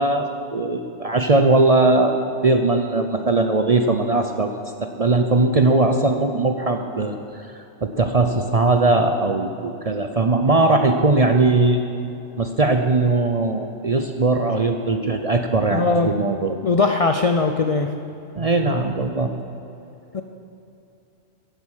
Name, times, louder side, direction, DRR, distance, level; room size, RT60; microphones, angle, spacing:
voice 1, 0.0-7.1 7.4-7.5 7.8-11.8 12.4-16.6 18.4-19.3, right 2 dB, 35° right, 5 dB, 0.6 m, -19 dB
voice 2, 15.7-16.1 16.6-17.9 20.1-20.2, left 4 dB, 45° left, 5 dB, 0.4 m, -19 dB
11.0 x 10.5 x 7.4 m, 2.8 s
omnidirectional pair, 1.3 m